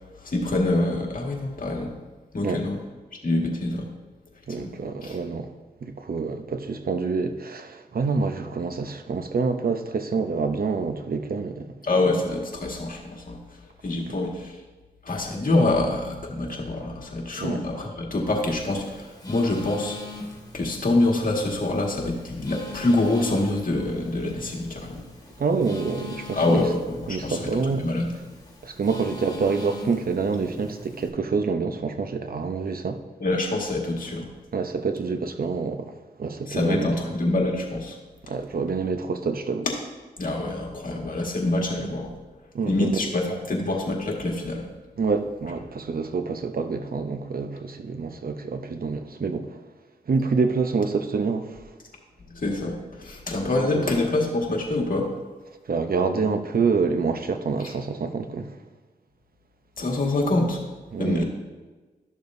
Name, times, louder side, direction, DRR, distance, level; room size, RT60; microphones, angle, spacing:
voice 1, 0.2-1.9 2.3-2.8 3.2-3.9 4.6-4.7 5.0-5.2 11.8-13.4 13.8-14.5 15.1-20.0 20.5-25.0 26.3-27.5 27.8-28.1 33.2-34.3 36.5-38.0 40.2-42.1 42.7-44.7 52.3-55.1 59.8-60.6 61.0-61.2, left 2 dB, 55° left, 1.8 m, -25 dB
voice 2, 4.5-5.5 5.8-11.7 17.4-17.6 25.4-26.7 27.1-27.9 28.6-33.0 34.5-35.9 36.2-36.9 38.3-39.7 42.5-43.0 45.0-49.6 50.1-51.6 53.5-53.8 55.7-58.5 60.9-61.2, right 4 dB, 60° right, 0.7 m, -27 dB
Telephone, 18.3-31.1, left 1 dB, 20° left, 2.2 m, -42 dB
12.5 x 6.8 x 2.7 m
cardioid pair, 60°, 17 cm